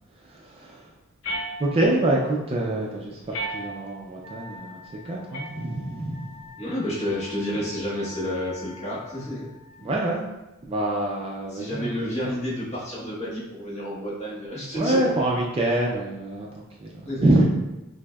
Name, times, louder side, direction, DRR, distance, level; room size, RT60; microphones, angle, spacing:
voice 1, 0.2-0.9 1.6-6.5 9.8-10.2 10.6-12.4 14.7-17.4, right 1 dB, 25° right, -2 dB, 0.3 m, -26 dB
sound 1, 1.2-2.1 3.3-4.1 5.3-6.1, right 1 dB, 75° left, 0.8 m, -35 dB
Wind instrument woodwind instrument, 4.2-9.9, left 4 dB, 85° right, 0.6 m, -47 dB
voice 2, 6.6-9.5 11.5-15.0 17.0-17.4, equal, 30° left, -7 dB, 1.0 m, -30 dB
5.9 x 2.0 x 2.2 m, 1.0 s
head